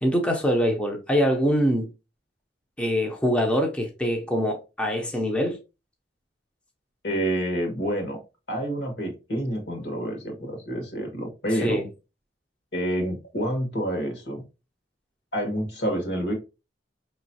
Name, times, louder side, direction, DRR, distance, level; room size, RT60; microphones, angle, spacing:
voice 1, 0.0-1.9 2.8-5.6 11.5-11.8, equal, 5° left, 0.5 m, -24 dB
voice 2, 7.0-8.2 8.5-11.8 12.7-14.4 15.3-16.3, right 1 dB, 70° left, 1.6 m, -28 dB
5.2 x 3.0 x 2.7 m
head